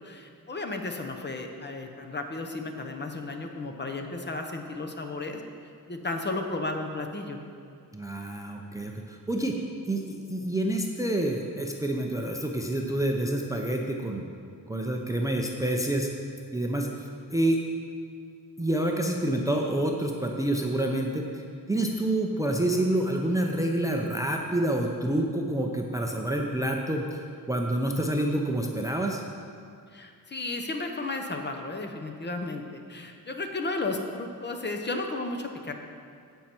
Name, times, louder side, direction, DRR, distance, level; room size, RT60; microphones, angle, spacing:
voice 1, 0.0-5.4 5.9-7.4 29.9-35.7, left 2 dB, 30° left, 4 dB, 0.7 m, -34 dB
voice 2, 7.9-9.6 9.9-14.2 14.7-16.1 16.5-17.6 18.6-21.3 21.7-29.2, right 1 dB, 10° right, 1 dB, 0.5 m, -28 dB
15.0 x 5.5 x 4.5 m, 2.3 s
wide cardioid pair, 150°, 37 cm